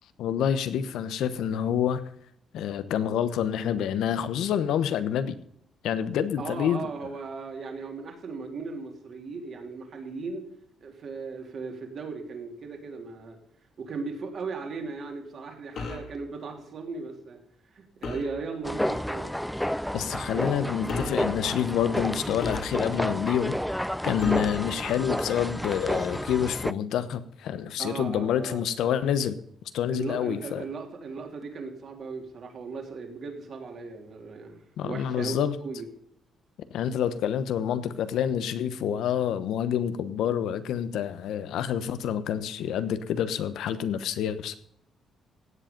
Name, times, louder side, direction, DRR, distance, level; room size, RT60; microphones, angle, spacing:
voice 1, 0.2-2.0 2.5-5.4 5.8-6.9 19.9-23.6 24.0-29.4 29.7-30.6 34.8-35.6 36.7-44.6, left 9 dB, 80° left, 13 dB, 1.0 m, -27 dB
voice 2, 6.4-10.4 10.8-13.4 13.8-17.4 17.7-19.3 27.8-28.6 29.9-35.9, right 4 dB, 50° right, 3 dB, 3.1 m, -37 dB
sound 1, 15.8-16.1 18.0-18.4 19.6-19.8 20.9-21.3 22.4-23.1 24.2-24.6, left 3 dB, 65° left, 2.5 m, -35 dB
sound 2, 18.6-26.7, equal, ahead, 0.4 m, -31 dB
16.5 x 7.8 x 5.3 m, 0.69 s
cardioid pair, 105°, 0 cm